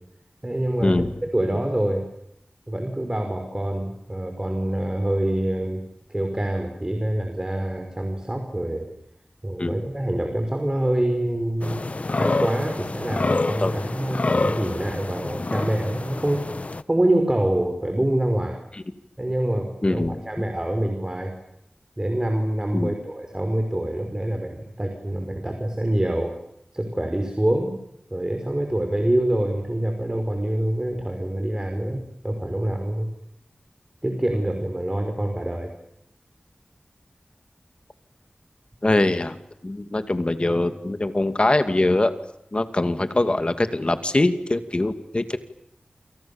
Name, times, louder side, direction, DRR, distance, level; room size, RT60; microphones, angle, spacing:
voice 1, 0.4-1.0 1.3-2.0 2.7-5.8 6.1-8.9 9.4-16.5 16.9-18.6 19.2-21.3 22.0-26.3 26.7-27.7 28.1-33.1 34.0-35.7, right 1 dB, 25° right, 4 dB, 5.4 m, -25 dB
sound 1, 11.6-16.8, left 3 dB, 60° left, 1.1 m, -27 dB
voice 2, 19.8-20.2 22.7-22.9 38.8-39.4 39.6-42.1 42.5-45.4, left 2 dB, 45° left, 9 dB, 2.4 m, -22 dB
28.5 x 28.0 x 7.2 m, 0.77 s
wide cardioid pair, 55°, 3 cm